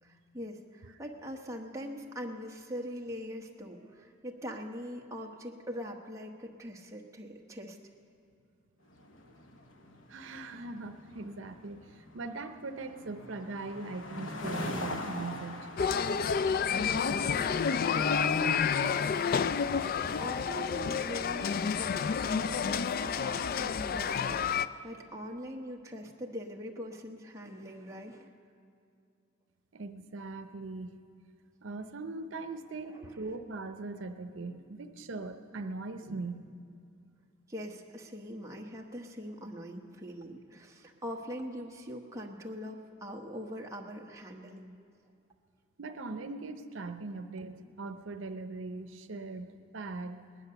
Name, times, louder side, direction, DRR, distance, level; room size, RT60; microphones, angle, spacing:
voice 1, 0.0-7.8 16.7-28.3 32.9-33.1 37.5-44.8, equal, 15° right, 0 dB, 1.1 m, -42 dB
sound 1, 8.9-22.4, left 1 dB, 85° left, 1.1 m, -44 dB
voice 2, 10.1-15.7 29.7-31.0 31.6-36.5 45.8-50.3, right 3 dB, 80° right, 7 dB, 0.7 m, -40 dB
sound 2, 15.8-24.7, left 6 dB, 50° left, 0.3 m, -29 dB
19.5 x 10.0 x 6.8 m, 2.4 s
head